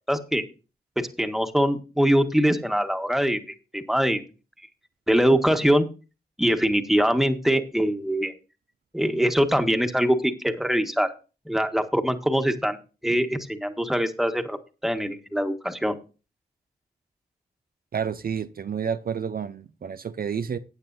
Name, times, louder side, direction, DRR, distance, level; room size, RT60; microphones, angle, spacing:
voice 1, 0.1-0.4 1.0-4.2 5.1-5.9 6.4-8.3 8.9-11.1 11.5-12.8 13.0-14.6 14.8-16.0, equal, ahead, 1.6 m, -23 dB
voice 2, 17.9-20.6, right 7 dB, 60° right, 0.6 m, -30 dB
15.0 x 9.0 x 2.7 m
cardioid pair, 60°, 17 cm